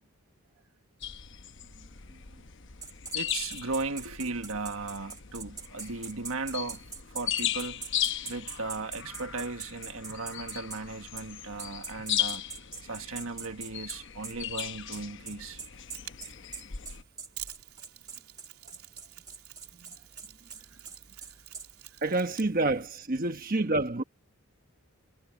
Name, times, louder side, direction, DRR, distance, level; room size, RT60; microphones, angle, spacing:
sound 1, 1.0-17.0, left 10 dB, 55° left, 1.0 m, -37 dB
sound 2, 2.8-10.8 11.2-11.3 11.6-21.7, right 5 dB, 15° right, 1.8 m, -42 dB
voice 1, 3.1-6.8 7.1-7.8 8.3-12.4 12.8-15.6, right 3 dB, 70° right, 1.5 m, -36 dB
Mechanisms, 15.7-22.9, right 13 dB, 85° right, 3.3 m, -49 dB
voice 2, 22.0-24.0, right 2 dB, 40° right, 1.2 m, -28 dB
head